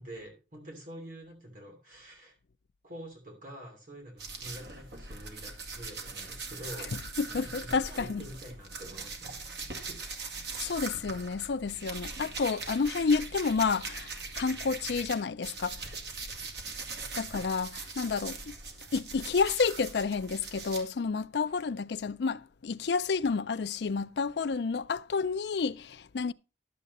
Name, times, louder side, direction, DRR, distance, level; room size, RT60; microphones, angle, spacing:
voice 1, 0.0-2.4 2.8-7.0 7.3-9.8, equal, 45° right, 2.9 m, -46 dB
sound 1, 4.2-15.1 15.4-20.8, right 4 dB, 65° right, 2.1 m, -41 dB
voice 2, 7.2-8.2 10.6-15.8 17.2-18.6 18.9-26.3, left 5 dB, 60° left, 0.4 m, -30 dB
12.0 x 7.4 x 4.1 m
head